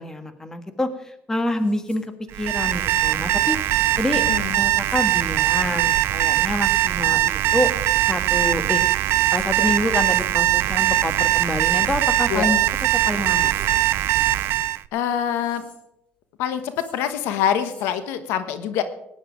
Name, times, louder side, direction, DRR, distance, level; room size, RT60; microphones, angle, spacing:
voice 1, 0.0-4.2 4.5-7.7 8.1-8.8 9.3-12.6 13.1-13.5, left 1 dB, 15° left, 9 dB, 1.6 m, -27 dB
sound 1, 1.5-2.0 2.7-3.0 3.8-4.1 4.6-5.1 5.5-6.1 6.4-6.8 7.2-7.7 8.1-8.6 9.1-9.5 10.0-10.3 10.7-11.2 11.6-12.0 12.5-13.0 13.3-13.7 14.1-14.6 15.1-15.8 16.6-17.0 17.4-17.9, left 2 dB, 35° left, 5.5 m, -50 dB
Alarm, 2.3-14.8, right 16 dB, 75° right, 0.4 m, -21 dB
voice 2, 4.3-4.6 12.3-12.4 14.9-15.6 16.4-18.8, left 9 dB, 85° left, 11 dB, 1.2 m, -25 dB
17.0 x 10.0 x 5.2 m, 0.82 s
cardioid pair, 100°, 4 cm